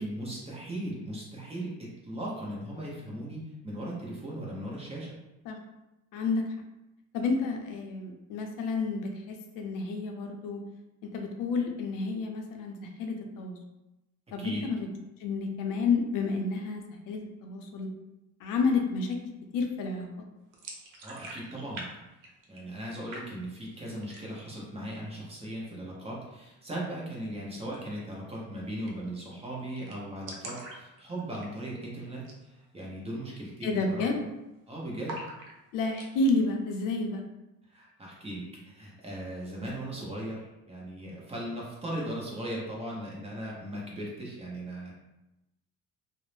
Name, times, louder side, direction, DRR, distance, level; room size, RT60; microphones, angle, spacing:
voice 1, 0.0-5.1 14.4-14.7 21.0-21.8 22.5-34.1 34.7-35.2 37.7-44.9, right 1 dB, 20° right, -4 dB, 0.7 m, -38 dB
voice 2, 6.1-6.4 7.1-10.6 11.0-13.6 14.3-14.9 15.2-17.9 18.4-19.2 19.5-20.1 33.6-34.2 35.7-37.2, left 3 dB, 70° left, 3 dB, 0.5 m, -30 dB
sound 1, 20.5-21.9 22.1-22.8 23.1-23.7 24.0-24.5 24.9-25.0 25.3-25.9 27.6-27.8 28.1-28.2 28.4-28.5 28.9-29.2 29.5-29.6 29.8-31.8 32.2-32.4 32.8-32.9 33.4-33.7 34.0-34.6 35.0-36.1, right 2 dB, 70° right, 0.7 m, -44 dB
2.5 x 2.0 x 3.1 m, 0.96 s
cardioid pair, 125°, 34 cm